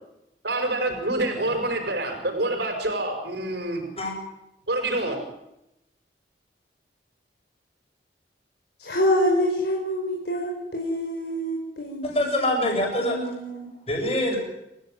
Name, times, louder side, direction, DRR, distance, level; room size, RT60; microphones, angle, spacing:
voice 1, 0.4-3.8 4.7-5.2, right 2 dB, 65° right, 4 dB, 5.8 m, -26 dB
voice 2, 8.8-13.7, equal, 65° left, 0 dB, 4.9 m, -27 dB
voice 3, 12.0-13.2 13.9-14.4, left 1 dB, 35° left, 1 dB, 7.9 m, -24 dB
27.5 x 16.0 x 9.3 m, 0.87 s
head